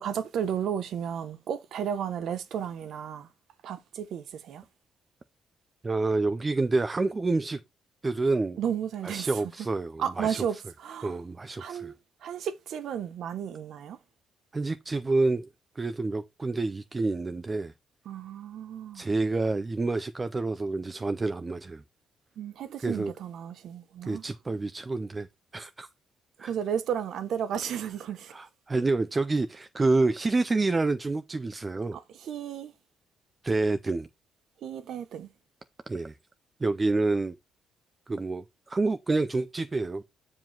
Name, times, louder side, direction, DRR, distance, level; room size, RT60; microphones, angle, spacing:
voice 1, 0.0-3.3 3.6-4.6 8.6-9.3 10.0-11.1 11.6-11.9 12.2-14.0 18.1-19.0 22.4-24.2 26.4-28.4 31.9-32.7 34.6-35.3, right 8 dB, 55° right, 0.9 m, -33 dB
voice 2, 5.8-7.6 8.0-8.6 9.0-10.5 11.0-11.9 14.5-15.5 15.8-17.7 18.9-21.8 22.8-23.1 24.0-25.3 25.5-25.9 26.4-26.5 28.3-32.0 33.4-34.1 35.9-36.2 36.6-37.3 38.1-40.0, right 3 dB, 15° right, 0.4 m, -28 dB
7.6 x 4.7 x 4.4 m
cardioid pair, 170°, 0 cm